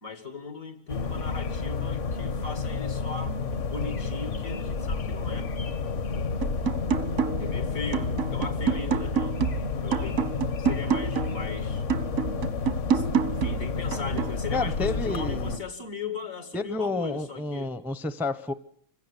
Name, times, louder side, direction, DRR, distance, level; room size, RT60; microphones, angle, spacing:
voice 1, 0.0-5.5 7.4-9.4 9.8-10.2 10.6-11.8 12.9-17.8, left 4 dB, 85° left, 2.8 m, -38 dB
sound 1, 0.9-15.6, left 4 dB, 65° left, 1.6 m, -30 dB
sound 2, 6.4-7.6 7.9-11.5 11.9-14.4, right 7 dB, 85° right, 1.6 m, -28 dB
voice 2, 14.5-15.6 16.5-18.5, left 3 dB, ahead, 0.5 m, -30 dB
26.0 x 16.0 x 8.2 m
omnidirectional pair, 1.4 m